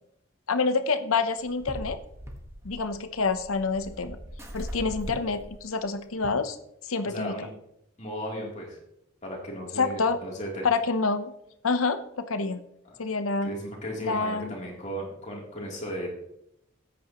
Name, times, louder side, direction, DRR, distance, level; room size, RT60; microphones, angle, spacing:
voice 1, 0.5-2.0 2.6-4.2 4.5-6.6 6.8-7.4 9.8-10.2 10.6-11.3 11.6-12.6 13.0-13.5 14.0-14.5, left 4 dB, 85° left, 10 dB, 0.8 m, -27 dB
sound 1, 1.4-6.3, equal, 15° right, 1.3 m, -40 dB
voice 2, 7.0-7.5 8.0-8.8 9.2-10.6 12.8-13.0 13.4-16.1, equal, 35° left, -2 dB, 3.1 m, -35 dB
13.5 x 9.2 x 3.0 m, 0.78 s
head